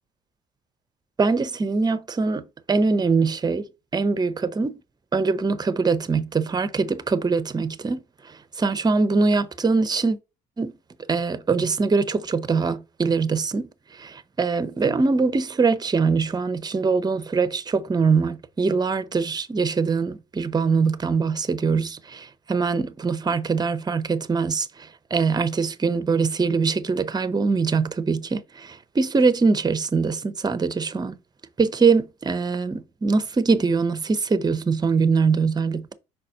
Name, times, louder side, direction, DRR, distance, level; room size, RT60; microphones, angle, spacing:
voice 1, 1.2-4.8 5.1-10.2 10.6-10.7 11.1-31.2 31.6-35.9, right 4 dB, 20° right, 0.7 m, -23 dB
5.7 x 4.1 x 4.2 m
cardioid pair, 95°, 20 cm